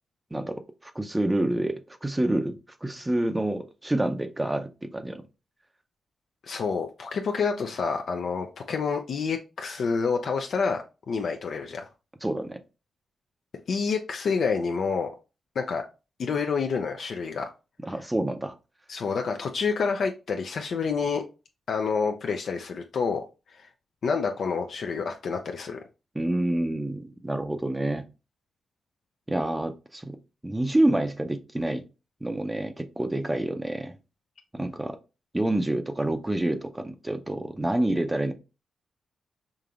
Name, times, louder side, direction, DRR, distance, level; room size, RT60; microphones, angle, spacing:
voice 1, 0.3-5.2 12.2-12.6 17.8-18.6 26.1-28.0 29.3-30.2 30.4-31.8 32.2-34.0 34.5-35.0 35.3-38.3, right 1 dB, 15° right, 0.5 m, -28 dB
voice 2, 6.4-11.9 13.7-15.1 15.6-15.8 16.2-17.5 18.9-21.2 21.7-23.2 23.5-23.7 24.0-25.8, left 5 dB, 70° left, 0.4 m, -28 dB
5.0 x 2.8 x 2.4 m
cardioid pair, 70°, 0 cm